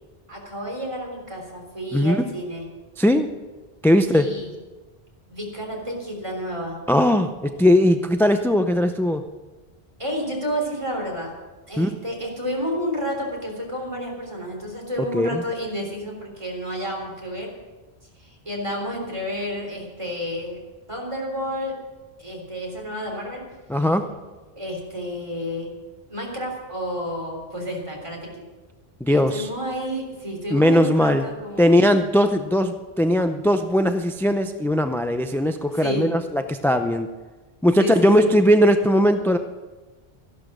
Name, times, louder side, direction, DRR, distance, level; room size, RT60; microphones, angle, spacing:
voice 1, 0.3-2.7 4.1-4.5 5.3-6.8 10.0-11.3 11.7-17.5 18.2-20.6 20.9-21.7 22.2-23.4 24.6-25.7 26.1-28.4 29.1-31.8 35.7-36.1 37.8-38.3, equal, 30° right, 0 dB, 3.7 m, -30 dB
voice 2, 1.9-2.3 3.0-3.3 3.8-4.3 6.9-9.3 11.8-12.0 15.1-15.4 23.7-24.1 29.0-29.5 30.5-31.2 31.6-37.1 37.6-39.4, equal, 5° left, 7 dB, 0.4 m, -19 dB
14.0 x 11.5 x 6.2 m, 1.2 s
omnidirectional pair, 1.1 m